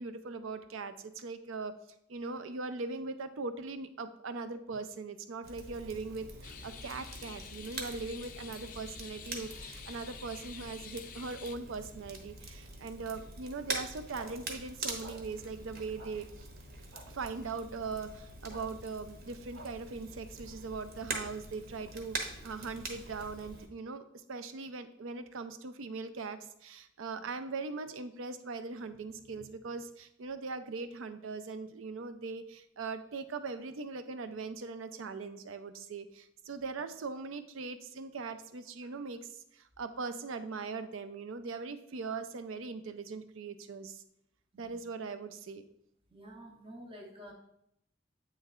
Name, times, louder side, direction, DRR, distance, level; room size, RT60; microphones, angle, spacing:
voice 1, 0.0-1.7 2.1-16.5 17.1-24.0 24.3-44.0 44.6-45.6, right 4 dB, 70° right, 11 dB, 0.5 m, -40 dB
Crackle, 5.4-23.7, right 3 dB, 50° right, 0.9 m, -44 dB
sound 1, 6.4-11.6, left 8 dB, 40° left, 0.4 m, -49 dB
sound 2, 14.1-14.3 15.0-15.2 16.0-16.1 16.9-17.0 18.5-18.6 19.5-19.7, right 1 dB, 90° right, 1.4 m, -49 dB
voice 2, 44.5-44.8 46.1-47.3, equal, 25° right, 0 dB, 0.7 m, -50 dB
8.5 x 3.2 x 3.6 m, 0.77 s
head